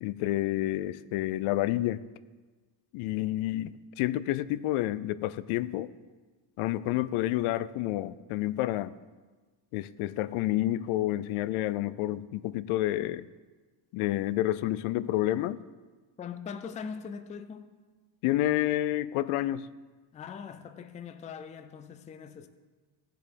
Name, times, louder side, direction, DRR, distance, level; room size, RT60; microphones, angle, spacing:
voice 1, 0.0-2.0 2.9-5.9 6.6-9.0 9.7-13.3 13.9-15.6 18.2-19.7, left 15 dB, 85° left, 0.6 m, -29 dB
voice 2, 16.2-17.7 20.1-22.5, left 6 dB, 15° left, 0.3 m, -41 dB
15.5 x 7.7 x 5.1 m
cardioid pair, 160°, 49 cm